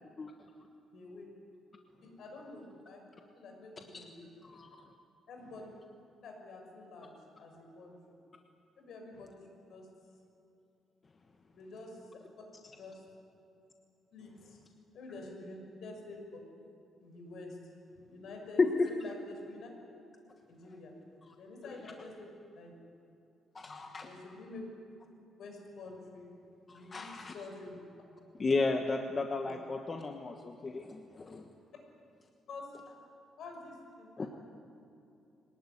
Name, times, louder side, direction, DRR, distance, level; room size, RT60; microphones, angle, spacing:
voice 1, 0.9-1.3 2.0-4.3 5.3-5.7 6.2-8.0 8.8-9.9 11.5-12.2 12.8-13.0 14.1-14.6 14.9-16.4 17.0-17.6 18.0-19.7 20.5-20.9 21.4-22.3 22.5-22.7 23.7-24.7 25.4-26.3 26.7-27.8 32.5-32.9 33.4-34.3, left 2 dB, 60° left, 2 dB, 6.5 m, -48 dB
voice 2, 18.6-18.9 21.3-21.4 23.5-24.1 26.7-27.3 28.4-31.5 34.2-34.3, left 3 dB, 25° left, 4 dB, 1.2 m, -33 dB
23.0 x 19.0 x 9.9 m, 2.7 s
cardioid pair, 150°, 0 cm